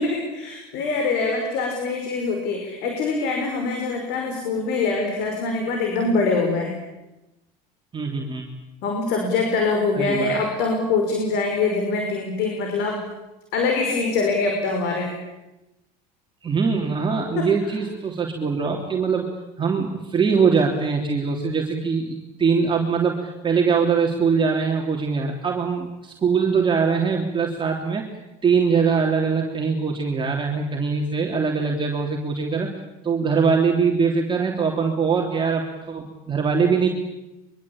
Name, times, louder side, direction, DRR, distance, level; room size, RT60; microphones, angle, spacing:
voice 1, 0.0-6.7 8.8-13.0 13.5-15.1 17.4-17.5, left 3 dB, 65° left, 3 dB, 5.6 m, -24 dB
voice 2, 7.9-8.5 10.0-10.4 16.4-19.3 19.6-28.0 28.4-32.7 33.0-36.9, right 5 dB, 25° right, 0 dB, 3.4 m, -22 dB
24.0 x 23.5 x 8.8 m, 1.0 s
supercardioid pair, 95°, 18 cm